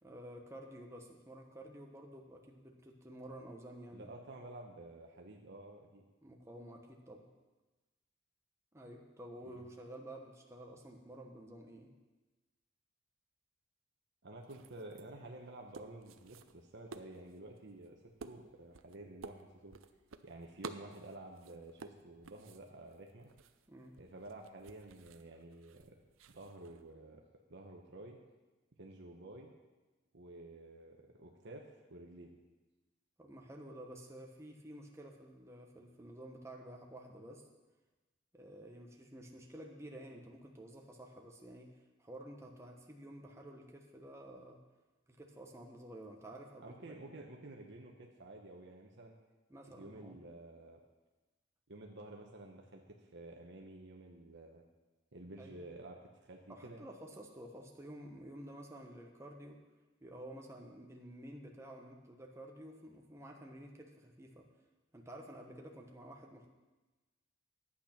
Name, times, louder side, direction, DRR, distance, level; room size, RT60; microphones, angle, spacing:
voice 1, 0.0-4.1 6.2-7.3 8.7-11.9 23.7-24.0 33.2-37.4 38.3-41.7 42.0-44.6 45.1-46.9 49.5-50.2 55.4-55.6 56.5-59.6 60.0-64.5 64.9-66.5, right 1 dB, 15° right, 0 dB, 1.1 m, -51 dB
voice 2, 3.9-6.0 9.5-9.7 14.2-18.0 18.2-19.7 20.2-23.3 24.0-26.0 26.3-27.2 27.5-28.2 28.8-29.5 30.1-32.4 46.6-49.1 49.7-50.8 51.7-54.6 55.1-56.8, right 2 dB, 60° right, 1 dB, 1.1 m, -51 dB
sound 1, 14.4-26.9, right 4 dB, 75° right, 0.6 m, -54 dB
11.0 x 8.7 x 5.9 m, 1.2 s
head